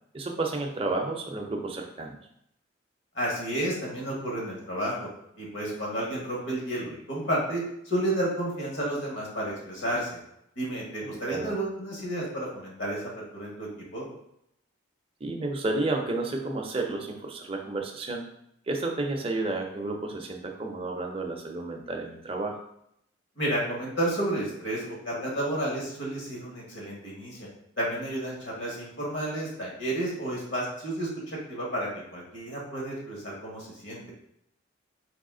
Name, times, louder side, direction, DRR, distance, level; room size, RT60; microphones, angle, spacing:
voice 1, 0.1-2.2 11.0-11.5 15.2-18.3 18.7-22.6, right 2 dB, 25° right, 2 dB, 0.5 m, -31 dB
voice 2, 3.1-5.1 5.4-10.2 10.6-13.0 13.3-14.1 23.4-27.5 27.8-34.0, right 1 dB, 60° left, -4 dB, 1.5 m, -31 dB
4.1 x 3.0 x 3.7 m, 0.76 s
head